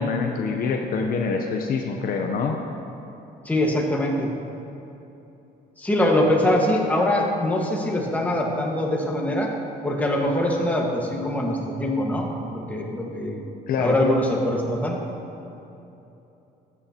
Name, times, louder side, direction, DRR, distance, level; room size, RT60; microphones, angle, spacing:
voice 1, 0.0-2.6 13.7-14.0, left 4 dB, 60° left, 3 dB, 0.7 m, -25 dB
voice 2, 3.4-4.3 5.8-9.5 9.8-13.4 13.8-15.0, left 1 dB, 10° left, -1 dB, 1.5 m, -23 dB
14.0 x 8.4 x 2.9 m, 2.9 s
cardioid pair, 110°, 17 cm